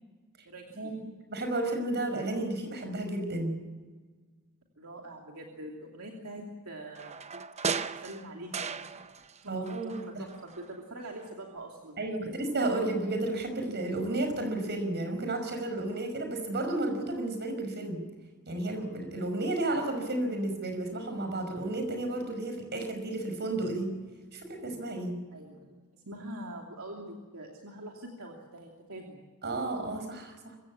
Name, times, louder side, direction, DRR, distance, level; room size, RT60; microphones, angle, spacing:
voice 1, 0.4-0.9 4.8-7.2 8.0-8.8 9.4-12.2 25.3-29.2, right 1 dB, 70° right, 0 dB, 2.9 m, -44 dB
voice 2, 1.3-3.6 9.5-10.0 12.0-18.1 18.5-23.9 24.3-25.2 29.4-30.6, right 2 dB, 50° right, 5 dB, 5.4 m, -32 dB
sound 1, 7.0-9.4 9.7-10.7 11.1-11.2, right 5 dB, 30° right, 0.8 m, -36 dB
25.0 x 16.0 x 8.6 m, 1.4 s
head